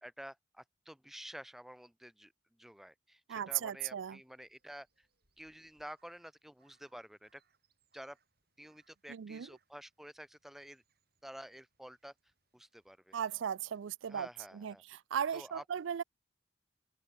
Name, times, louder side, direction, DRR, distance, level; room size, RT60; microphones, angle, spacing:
voice 1, 0.0-2.3 2.6-5.1 5.4-7.4 7.9-8.2 8.6-10.8 11.2-12.1 12.5-13.1 14.1-14.8 15.3-15.6, equal, ahead, 0.3 m, -50 dB
voice 2, 3.3-4.2 9.1-9.5 13.1-14.3 14.5-16.0, right 8 dB, 85° right, 0.4 m, -37 dB
Crow, 4.1-13.0, right 5 dB, 55° right, 5.9 m, -78 dB
open air
head